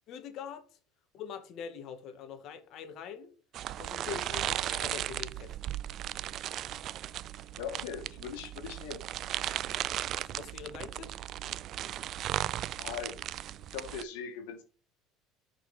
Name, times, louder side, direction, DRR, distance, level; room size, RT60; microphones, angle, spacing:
voice 1, 0.1-0.8 1.1-3.3 3.8-5.5 10.1-11.2, left 7 dB, 55° left, 1.7 m, -43 dB
sound 1, 3.5-14.0, right 12 dB, 50° right, 0.3 m, -36 dB
voice 2, 7.6-9.0 12.8-13.2 13.7-14.6, left 7 dB, 85° left, 2.0 m, -40 dB
6.1 x 5.4 x 4.3 m
supercardioid pair, 110°, 0 cm